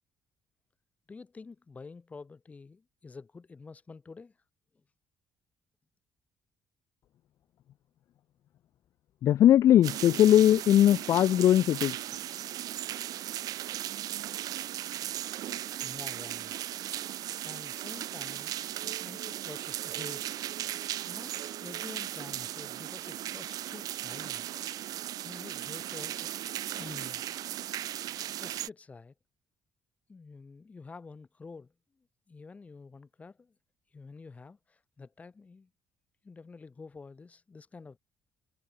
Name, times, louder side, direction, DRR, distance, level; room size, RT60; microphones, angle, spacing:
voice 1, 1.1-4.4 15.8-16.6 17.4-20.5 21.0-24.5 25.2-26.4 26.7-27.3 28.4-29.1 30.1-33.6 33.9-35.7 36.2-38.0, left 4 dB, 20° left, 7.0 m, -48 dB
voice 2, 9.2-12.0, left 11 dB, 50° left, 0.3 m, -20 dB
sound 1, 9.8-28.7, right 13 dB, 60° right, 1.6 m, -37 dB
cardioid pair, 155°, 7 cm